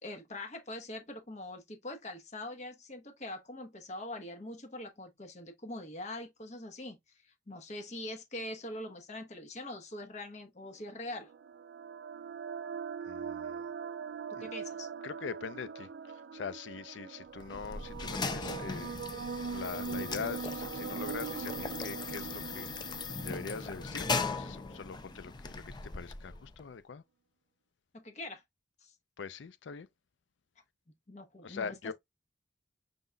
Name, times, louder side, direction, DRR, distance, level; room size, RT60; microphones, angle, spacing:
voice 1, 0.0-11.3 14.4-14.9 27.9-28.4 28.8-29.0 31.1-31.9, left 1 dB, 40° left, 1.1 m, -43 dB
sound 1, 10.9-25.0, right 6 dB, 70° right, 0.4 m, -42 dB
voice 2, 13.1-13.6 14.3-14.5 15.0-19.0 19.5-27.0 29.2-29.9 31.4-31.9, left 5 dB, 90° left, 0.5 m, -43 dB
sound 2, 17.4-26.7, left 4 dB, 25° left, 0.4 m, -39 dB
5.2 x 3.8 x 2.2 m
head